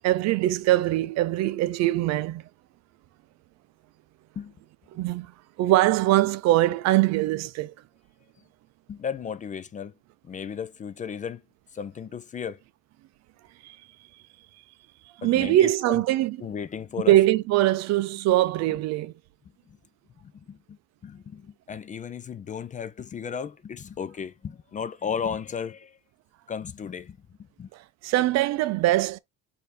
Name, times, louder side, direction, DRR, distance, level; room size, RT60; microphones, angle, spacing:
voice 1, 0.0-2.4 4.9-5.3 5.6-7.7 13.6-13.8 15.2-16.4 17.1-19.1 28.0-29.2, right 15 dB, 60° right, 0.5 m, -22 dB
voice 2, 8.9-9.9 10.3-11.4 11.7-12.6 15.2-16.0 16.4-17.2 19.7-19.8 20.2-20.8 21.0-26.0 26.5-27.2 27.6-27.7, left 7 dB, 25° left, 0.4 m, -34 dB
4.6 x 2.7 x 4.0 m
supercardioid pair, 90°, 30 cm